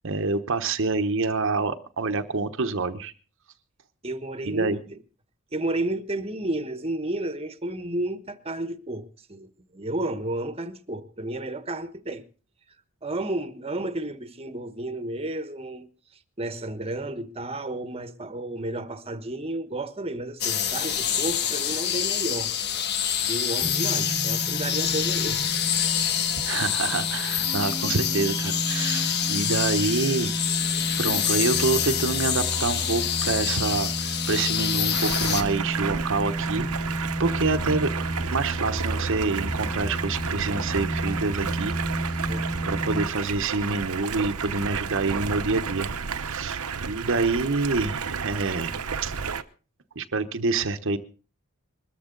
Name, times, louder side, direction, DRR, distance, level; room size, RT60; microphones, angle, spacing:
voice 1, 0.0-3.1 4.4-4.8 26.4-30.3 31.0-37.9 38.3-41.7 42.0-42.3 42.6-45.9 46.2-49.1 50.0-51.0, right 3 dB, 60° right, 1.0 m, -27 dB
voice 2, 4.0-5.0 5.5-12.2 13.0-15.9 16.4-22.5 23.3-25.4 42.2-42.5, right 1 dB, 25° right, 1.2 m, -32 dB
sound 1, 20.4-35.4, left 9 dB, 50° left, 1.4 m, -26 dB
sound 2, 23.6-43.1, right 1 dB, 25° left, 5.0 m, -32 dB
Stream, 34.9-49.4, right 6 dB, 85° right, 1.0 m, -32 dB
21.5 x 14.0 x 3.9 m
head